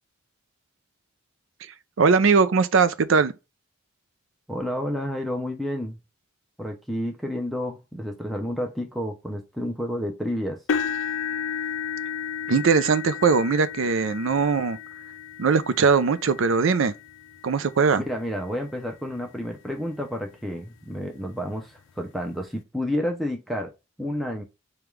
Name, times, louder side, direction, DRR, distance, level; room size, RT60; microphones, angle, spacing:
voice 1, 2.0-3.3 12.5-14.8 15.4-16.9 17.4-18.0, right 5 dB, 70° right, 0.5 m, -20 dB
voice 2, 4.5-6.0 6.6-10.6 18.1-23.7 24.0-24.4, equal, ahead, 0.5 m, -30 dB
sound 1, 10.7-18.7 19.4-19.6 20.0-20.1 21.5-21.6, left 7 dB, 60° left, 0.3 m, -33 dB
5.2 x 2.3 x 3.1 m
head